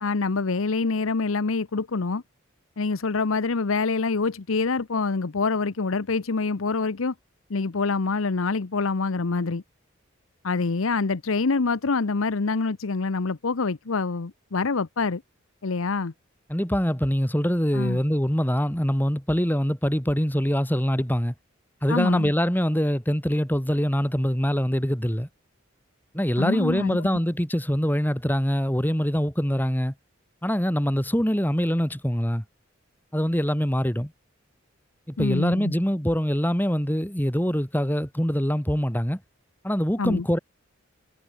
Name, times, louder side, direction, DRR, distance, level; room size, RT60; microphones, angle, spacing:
voice 1, 0.0-2.2 2.8-7.1 7.5-9.6 10.4-15.2 15.6-16.1 17.7-18.0 21.9-22.3 26.4-27.1 35.2-35.8 40.0-40.3, left 4 dB, 85° left, 0.8 m, -26 dB
voice 2, 16.5-21.3 21.8-25.3 26.1-29.9 30.4-32.4 33.1-34.1 35.1-39.2 39.6-40.4, equal, 10° left, 3.4 m, -24 dB
head